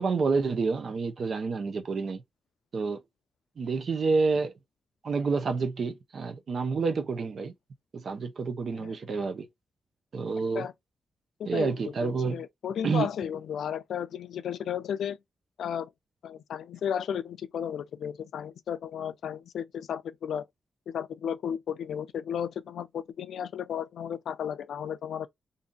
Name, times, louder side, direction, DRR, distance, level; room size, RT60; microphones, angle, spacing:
voice 1, 0.0-2.2 2.7-3.0 3.6-4.5 5.0-7.5 7.9-9.5 10.1-10.7 11.5-12.4 12.8-13.1, right 4 dB, 55° right, 0.6 m, -28 dB
voice 2, 11.4-15.2 15.6-15.9 16.2-20.4 20.9-25.3, left 8 dB, 90° left, 0.3 m, -34 dB
2.6 x 2.3 x 3.8 m
cardioid pair, 105°, 0 cm